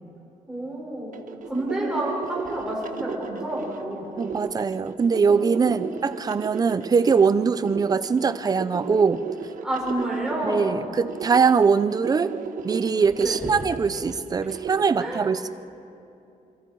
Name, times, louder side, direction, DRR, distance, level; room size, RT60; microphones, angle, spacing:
voice 1, 0.5-4.2 5.6-5.9 9.6-10.8 13.2-13.5 14.9-15.3, right 1 dB, 5° right, -4 dB, 6.1 m, -30 dB
sound 1, 1.1-14.8, right 6 dB, 70° right, 1.3 m, -35 dB
voice 2, 4.2-9.2 10.4-12.3 12.6-15.5, right 5 dB, 25° right, 14 dB, 0.5 m, -22 dB
27.0 x 26.0 x 4.7 m, 2.7 s
wide cardioid pair, 180°, 14 cm